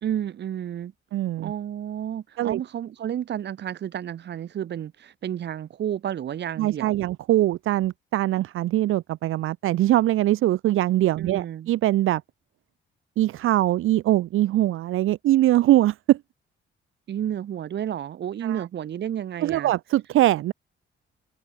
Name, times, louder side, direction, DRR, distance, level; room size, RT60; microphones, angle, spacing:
voice 1, 0.0-0.9 1.4-7.1 11.2-11.7 17.1-19.7, right 10 dB, 60° right, 1.9 m, -31 dB
voice 2, 1.1-1.5 2.4-2.6 6.6-12.2 13.2-16.2 18.4-18.6 19.4-20.5, right 14 dB, 85° right, 0.9 m, -22 dB
open air
cardioid pair, 135°, 21 cm